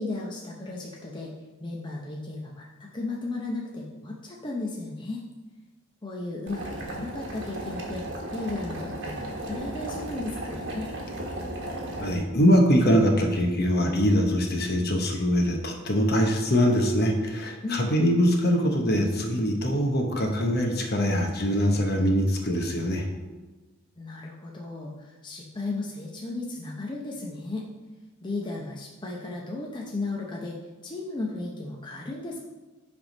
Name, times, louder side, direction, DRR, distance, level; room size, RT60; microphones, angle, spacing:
voice 1, 0.0-1.3 1.6-5.2 6.0-10.9 17.6-17.9 24.0-27.7 28.2-32.4, left 2 dB, 20° left, -2 dB, 0.7 m, -35 dB
Boiling, 6.5-12.1, right 1 dB, 55° right, 1.4 m, -35 dB
voice 2, 12.0-23.0, equal, 45° left, 3 dB, 0.9 m, -23 dB
7.7 x 3.5 x 5.3 m, 1.2 s
head